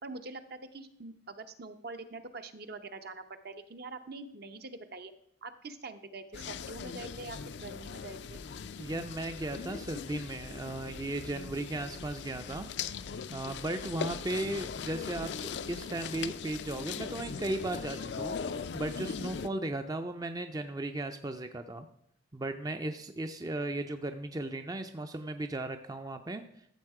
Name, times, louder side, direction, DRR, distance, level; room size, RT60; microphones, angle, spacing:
voice 1, 0.0-5.1 5.4-8.4, right 3 dB, 55° right, 8 dB, 0.8 m, -44 dB
sound 1, 6.3-19.5, left 6 dB, 60° left, 0.4 m, -40 dB
voice 2, 8.8-12.7 13.3-21.9 22.3-26.4, right 2 dB, 20° right, 7 dB, 0.5 m, -36 dB
13.5 x 7.2 x 4.8 m, 0.72 s
head